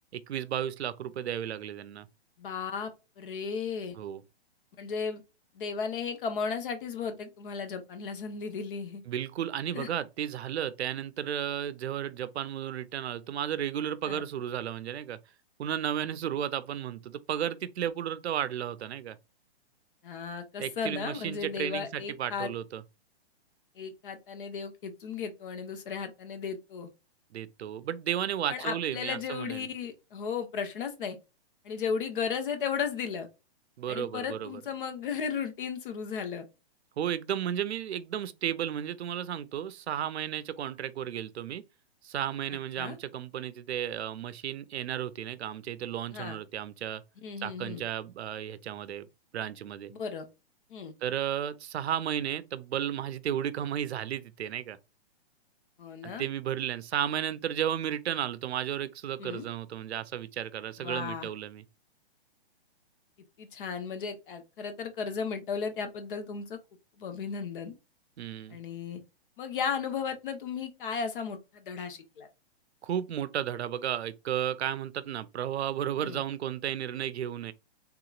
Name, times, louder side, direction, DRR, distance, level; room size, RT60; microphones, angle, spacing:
voice 1, 0.1-2.1 3.9-4.2 9.1-15.2 15.6-19.2 20.6-22.8 27.3-29.7 33.8-34.5 37.0-41.6 42.0-47.0 47.4-49.1 49.3-49.9 51.0-54.8 56.0-61.6 68.2-68.6 72.8-77.5, right 10 dB, 85° right, 0.6 m, -33 dB
voice 2, 2.4-2.9 3.2-3.9 4.8-5.2 5.5-9.0 9.7-9.9 14.0-14.2 20.0-22.5 23.7-26.9 28.5-31.2 31.6-33.3 33.9-36.4 42.5-43.0 46.1-46.4 47.2-47.8 49.9-50.2 50.7-50.9 55.8-56.3 59.2-59.5 60.8-61.3 63.4-66.6 67.0-67.7 68.5-69.0 69.4-72.3 76.0-76.2, left 6 dB, 55° left, 1.0 m, -35 dB
3.6 x 2.9 x 2.4 m
hypercardioid pair, 150°, 32 cm